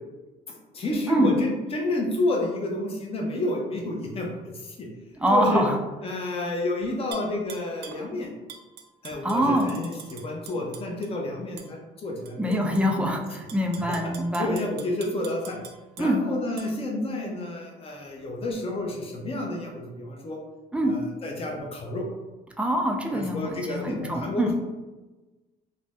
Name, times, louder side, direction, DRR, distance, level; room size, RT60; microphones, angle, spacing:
voice 1, 0.7-4.3 4.5-4.9 5.3-5.6 6.0-8.3 9.0-12.9 13.9-14.0 14.4-15.6 16.0-20.4 20.8-22.1 23.1-24.5, left 2 dB, 35° left, 0 dB, 0.7 m, -30 dB
voice 2, 5.1-5.8 9.2-9.7 12.4-14.5 16.0-16.2 20.7-20.9 22.6-24.5, equal, 5° right, 1 dB, 0.4 m, -24 dB
Tap / Glass, 7.1-8.0 8.5-11.1 11.6-11.7 12.2-12.8 13.3-16.1 16.6-16.7, right 7 dB, 75° right, 0.4 m, -44 dB
2.6 x 2.1 x 3.4 m, 1.1 s
cardioid pair, 110°, 17 cm